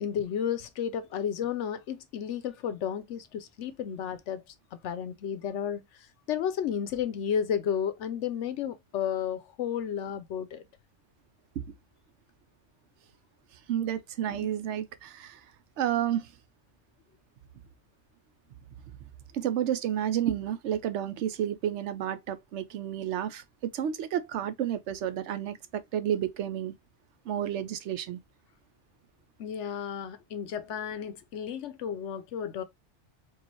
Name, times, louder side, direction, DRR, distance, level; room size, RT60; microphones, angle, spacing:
voice 1, 0.0-4.4 4.7-5.9 6.3-10.6 14.3-14.5 29.4-32.6, left 8 dB, 90° left, 1.0 m, -32 dB
voice 2, 13.7-15.4 15.8-16.3 19.3-23.4 23.7-26.7 27.3-28.2, right 10 dB, 80° right, 0.9 m, -31 dB
4.6 x 2.5 x 2.9 m
omnidirectional pair, 1.2 m